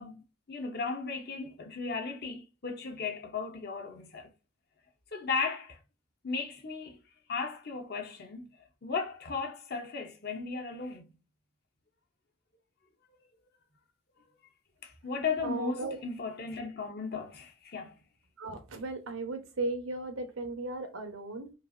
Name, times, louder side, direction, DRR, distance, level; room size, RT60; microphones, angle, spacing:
voice 1, 0.0-4.3 5.1-5.8 6.2-7.0 7.3-11.1 14.8-17.9, left 4 dB, 50° left, 0.9 m, -36 dB
voice 2, 15.4-16.0 18.4-21.5, right 2 dB, 90° right, 1.0 m, -36 dB
5.2 x 2.5 x 2.6 m
head